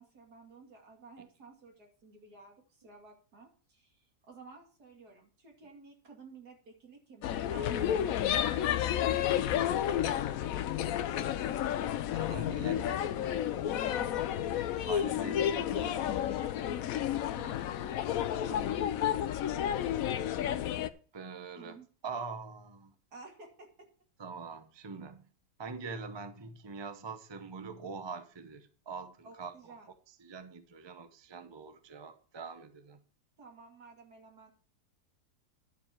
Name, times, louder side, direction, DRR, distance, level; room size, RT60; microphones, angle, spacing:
voice 1, 0.0-10.0 10.4-10.7 13.9-14.3 17.3-18.9 21.6-21.9 23.1-23.7 29.2-29.9 33.4-34.5, right 4 dB, 70° right, 2.9 m, -53 dB
sound 1, 7.2-20.9, left 10 dB, 65° left, 1.0 m, -31 dB
voice 2, 12.1-13.4 14.8-16.8 20.1-20.3 21.1-21.8 22.0-22.9 24.2-25.3 25.6-29.5 30.1-33.0, right 4 dB, 25° right, 0.5 m, -44 dB
11.0 x 7.3 x 4.5 m
omnidirectional pair, 1.8 m